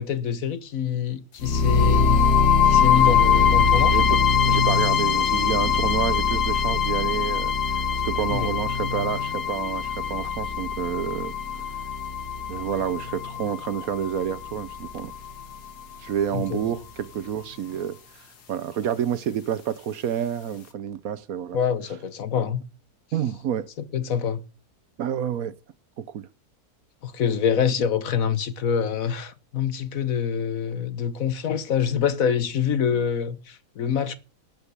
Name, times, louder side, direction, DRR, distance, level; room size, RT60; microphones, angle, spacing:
voice 1, 0.0-2.2 2.7-3.9 8.3-8.5 16.3-16.6 21.5-22.6 23.9-24.4 27.0-34.2, left 8 dB, 65° left, 1.4 m, -25 dB
sound 1, 1.4-15.4, left 6 dB, 85° left, 2.0 m, -22 dB
voice 2, 3.9-7.5 8.0-11.3 12.5-15.1 16.0-18.0 18.5-21.6 23.1-23.7 25.0-25.6 26.0-26.3, right 9 dB, 70° right, 1.2 m, -29 dB
12.0 x 5.3 x 8.0 m
omnidirectional pair, 1.6 m